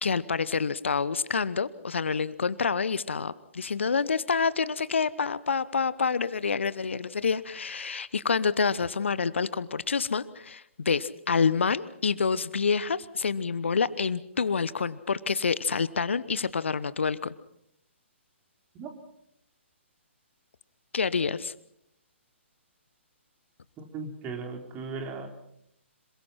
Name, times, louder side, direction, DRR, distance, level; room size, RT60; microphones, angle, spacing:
voice 1, 0.0-17.3 20.9-21.5, left 5 dB, 65° left, 17 dB, 1.0 m, -27 dB
voice 2, 23.8-25.3, right 4 dB, 20° right, 4 dB, 3.6 m, -37 dB
26.5 x 22.5 x 5.8 m, 0.74 s
figure-of-eight pair, 130°, 7 cm